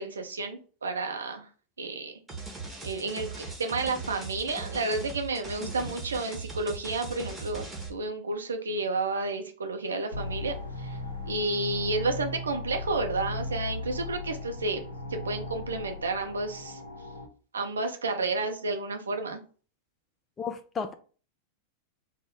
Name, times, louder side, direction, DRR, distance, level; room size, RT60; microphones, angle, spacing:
voice 1, 0.0-1.5 1.8-2.2 2.8-7.6 7.9-11.0 11.2-14.8 15.1-16.8 17.5-19.4, right 3 dB, 70° right, 0.6 m, -31 dB
sound 1, 2.3-7.9, right 3 dB, 5° right, 1.2 m, -39 dB
sound 2, 10.1-17.3, left 2 dB, 75° left, 0.7 m, -37 dB
voice 2, 20.4-20.9, left 5 dB, 20° left, 0.4 m, -33 dB
3.5 x 2.0 x 3.7 m
figure-of-eight pair, 90°, 0 cm